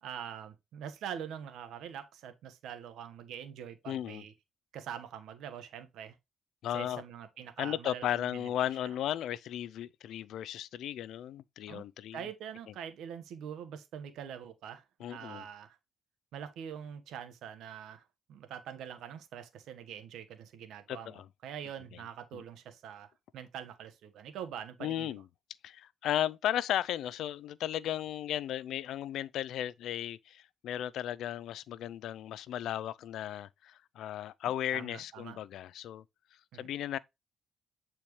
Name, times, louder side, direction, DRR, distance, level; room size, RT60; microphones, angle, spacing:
voice 1, 0.0-4.3 4.7-6.2 6.7-8.5 8.8-8.9 11.7-11.8 12.1-15.8 16.3-18.0 18.3-25.2 34.4-35.4 36.5-36.7, right 8 dB, 80° right, 1.3 m, -44 dB
voice 2, 3.9-4.2 6.6-7.0 7.6-12.2 15.0-15.4 20.9-21.3 22.3-22.4 24.8-25.2 25.6-36.0 36.6-37.0, left 11 dB, 80° left, 0.4 m, -35 dB
8.5 x 4.4 x 3.1 m
cardioid pair, 90°, 0 cm